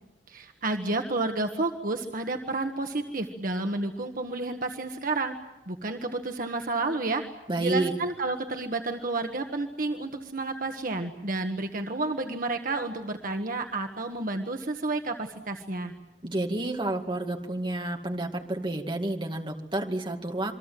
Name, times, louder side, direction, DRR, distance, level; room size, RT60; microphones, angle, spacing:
voice 1, 0.3-5.3 5.7-7.2 7.6-15.9, right 2 dB, 50° right, 4 dB, 1.5 m, -30 dB
voice 2, 7.5-7.9 16.2-20.5, right 2 dB, 25° right, 3 dB, 2.2 m, -30 dB
28.0 x 23.0 x 7.6 m, 0.97 s
head